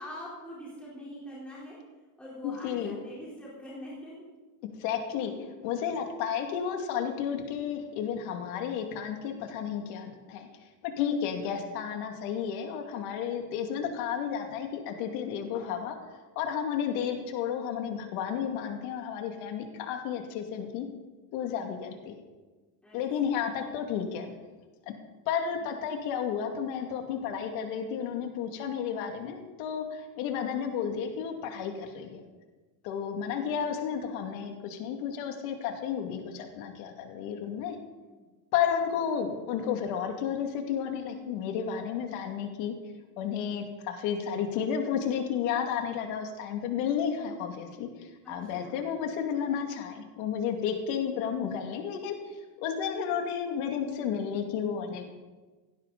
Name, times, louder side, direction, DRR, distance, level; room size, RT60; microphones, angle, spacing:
voice 1, 0.0-1.8 2.2-4.3 22.8-23.4 38.0-38.1 48.2-48.9, left 1 dB, 5° left, -8 dB, 4.1 m, -44 dB
voice 2, 2.4-3.0 4.8-5.3 5.6-16.0 16.4-20.9 21.3-22.1 22.9-24.3 25.3-32.2 32.8-37.8 38.5-42.7 43.2-55.0, left 8 dB, 90° left, 3 dB, 2.5 m, -32 dB
17.5 x 16.5 x 4.1 m, 1.3 s
cardioid pair, 175°, 45 cm